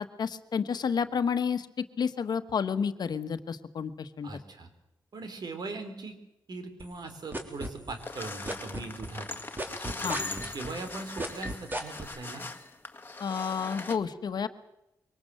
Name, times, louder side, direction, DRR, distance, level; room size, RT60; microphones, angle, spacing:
voice 1, 0.0-4.3 10.0-10.2 13.2-14.5, left 6 dB, 65° left, 10 dB, 1.3 m, -30 dB
voice 2, 4.2-4.7 5.1-6.2 6.5-9.3 9.7-12.5, right 3 dB, 65° right, 8 dB, 3.7 m, -40 dB
sound 1, 6.8-8.2 8.5-12.0, right 1 dB, 25° right, 3.7 m, -34 dB
sound 2, 8.0-14.0, left 2 dB, 30° left, 2.1 m, -40 dB
23.5 x 19.0 x 7.8 m, 0.86 s
cardioid pair, 70°, 8 cm